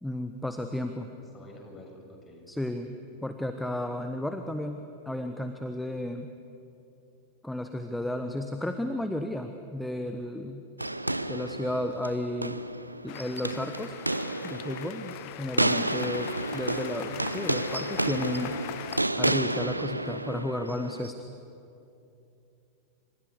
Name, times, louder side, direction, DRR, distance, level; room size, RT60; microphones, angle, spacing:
voice 1, 0.0-1.1 2.5-2.9 3.2-6.3 7.4-10.6 11.3-12.6 13.0-14.0 14.4-18.6 19.2-21.2, left 1 dB, 5° left, 7 dB, 1.2 m, -33 dB
voice 2, 1.1-2.5, left 1 dB, 20° left, 2 dB, 6.5 m, -50 dB
sound 1, 10.8-21.1, right 1 dB, 85° right, 0.8 m, -31 dB
sound 2, 13.1-19.0, left 16 dB, 45° left, 0.8 m, -41 dB
28.5 x 26.0 x 6.7 m, 2.7 s
figure-of-eight pair, 90°, 0 cm